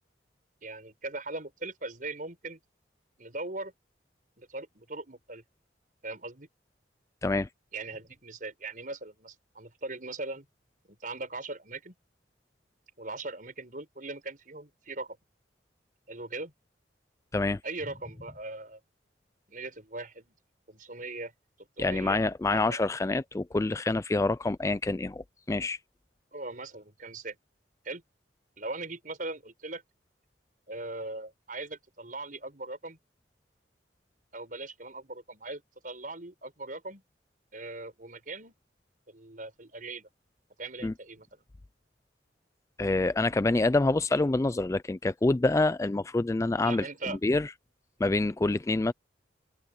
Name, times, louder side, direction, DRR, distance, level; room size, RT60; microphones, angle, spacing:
voice 1, 0.6-2.6 3.2-3.7 4.4-5.4 6.0-6.5 7.7-10.5 10.9-11.9 13.0-15.2 16.1-16.5 17.6-18.8 19.5-20.3 20.7-21.3 21.6-22.2 22.5-22.8 26.3-27.4 27.8-28.0 28.6-29.8 30.7-33.0 34.3-37.0 37.5-38.5 39.1-40.1 40.6-41.3 46.6-47.2, right 2 dB, 45° right, 6.1 m, -40 dB
voice 2, 21.8-25.8 40.8-40.9 42.8-46.8 47.2-47.5 48.0-48.9, left 2 dB, 15° left, 0.3 m, -26 dB
head